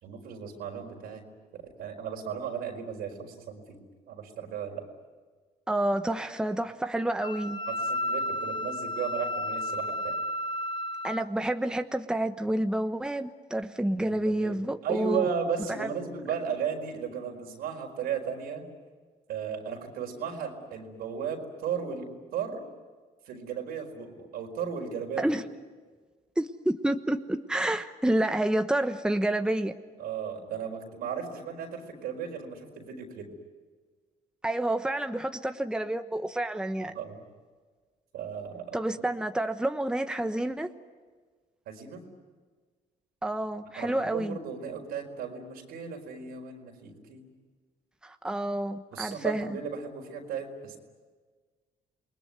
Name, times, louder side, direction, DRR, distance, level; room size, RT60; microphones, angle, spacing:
voice 1, 0.0-1.2 1.5-3.8 4.1-4.8 7.7-10.2 14.0-14.1 14.4-14.6 14.8-18.6 19.3-22.6 23.3-25.3 30.0-33.3 36.9-37.2 38.1-39.0 41.7-42.0 43.7-47.3 48.9-50.8, right 7 dB, 85° right, 2 dB, 4.8 m, -35 dB
voice 2, 5.7-7.6 11.0-15.3 15.8-15.9 25.2-25.4 26.4-29.7 34.4-36.9 38.7-40.7 43.2-44.4 48.0-49.6, right 1 dB, 5° right, 7 dB, 1.1 m, -29 dB
Wind instrument woodwind instrument, 7.2-11.2, left 1 dB, 30° left, 0.9 m, -32 dB
28.5 x 20.5 x 9.5 m, 1.4 s
cardioid pair, 95°, 15 cm